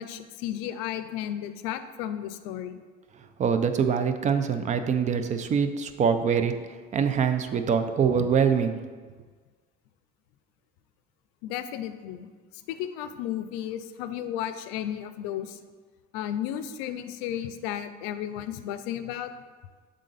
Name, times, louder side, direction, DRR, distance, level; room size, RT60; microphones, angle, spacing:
voice 1, 0.0-2.8 11.4-12.3 12.7-15.6 16.1-19.3, left 11 dB, 90° left, 11 dB, 0.5 m, -33 dB
voice 2, 3.4-6.5 6.9-8.8, right 6 dB, 35° right, 9 dB, 0.5 m, -24 dB
7.5 x 3.8 x 4.0 m, 1.4 s
cardioid pair, 115°, 21 cm